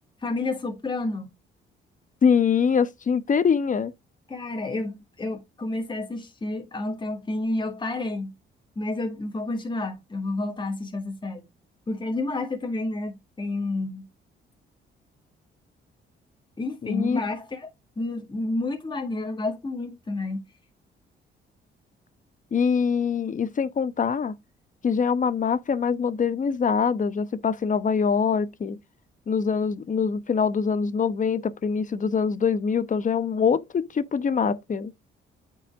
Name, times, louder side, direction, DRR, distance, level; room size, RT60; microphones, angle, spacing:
voice 1, 0.2-1.3 4.3-8.3 8.8-11.4 11.9-14.1 16.6-17.7 18.0-20.4, left 2 dB, 25° left, 2.0 m, -30 dB
voice 2, 2.2-3.9 16.8-17.2 22.5-24.3 24.8-28.8 29.3-34.9, left 6 dB, 40° left, 1.0 m, -24 dB
8.8 x 5.4 x 3.6 m
cardioid pair, 90°, 20 cm